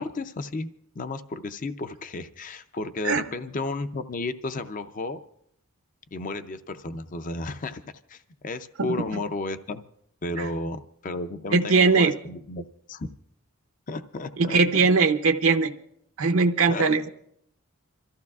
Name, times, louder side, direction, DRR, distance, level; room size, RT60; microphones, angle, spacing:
voice 1, 0.0-5.2 6.1-7.8 8.1-9.8 10.2-13.1 13.9-14.9 16.7-16.8, left 2 dB, 35° left, 10 dB, 0.5 m, -33 dB
voice 2, 11.5-12.1 14.4-15.7 16.2-17.1, right 4 dB, 70° right, 6 dB, 0.6 m, -20 dB
27.0 x 14.5 x 2.4 m, 0.70 s
head